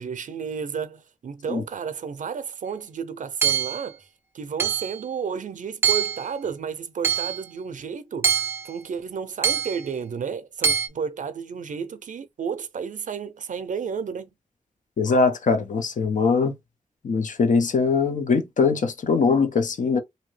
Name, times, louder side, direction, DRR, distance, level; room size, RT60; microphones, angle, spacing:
voice 1, 0.0-4.1 4.3-8.3 8.6-14.3, right 6 dB, 75° right, 0.5 m, -32 dB
Hammer / Chink clink, 3.4-3.9 4.6-5.0 5.8-6.3 7.0-7.4 8.2-8.7 9.4-9.8 10.6-10.9, right 7 dB, 15° right, 0.5 m, -23 dB
voice 2, 15.0-16.5 17.0-20.0, left 4 dB, 75° left, 0.6 m, -21 dB
2.8 x 2.6 x 3.1 m
wide cardioid pair, 100°, 13 cm